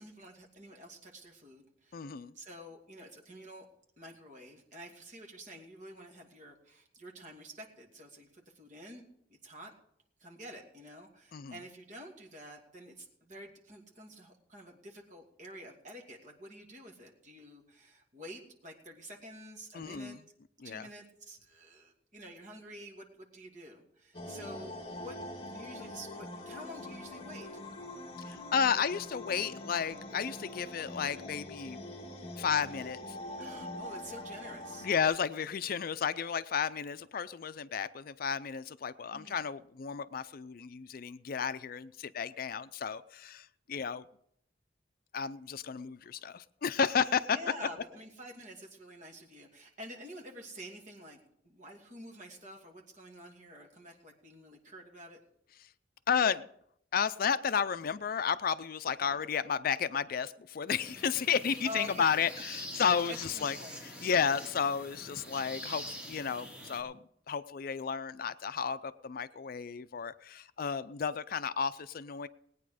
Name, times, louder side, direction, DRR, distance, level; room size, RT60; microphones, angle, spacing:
voice 1, 0.0-2.0 2.3-3.7 4.0-9.0 9.4-9.7 10.2-20.2 20.6-25.1 25.5-27.5 33.4-34.9 39.1-39.4 47.3-51.2 51.4-55.2 59.0-59.1 61.6-62.3 62.7-63.8, equal, 40° right, 1 dB, 2.6 m, -48 dB
voice 2, 1.9-2.3 11.3-11.5 19.7-20.2 20.6-20.9 28.3-31.8 32.4-33.2 34.8-44.0 45.1-47.4 56.1-56.5 56.9-63.6 64.0-72.3, left 6 dB, 50° left, 13 dB, 0.4 m, -32 dB
sound 1, 24.1-35.0, left 1 dB, 30° left, 1.8 m, -44 dB
sound 2, 60.7-66.8, equal, 5° right, 2.8 m, -45 dB
19.5 x 9.3 x 4.9 m, 0.72 s
head